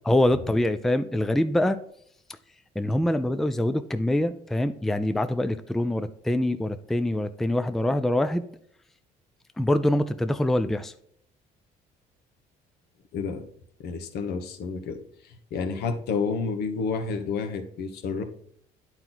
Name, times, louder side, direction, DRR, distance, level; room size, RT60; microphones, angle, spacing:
voice 1, 0.1-1.8 2.8-8.4 9.6-10.9, left 1 dB, ahead, 10 dB, 0.4 m, -24 dB
voice 2, 13.1-13.4 13.8-18.2, left 5 dB, 75° left, 7 dB, 1.2 m, -30 dB
9.5 x 4.4 x 4.0 m, 0.66 s
cardioid pair, 110°, 17 cm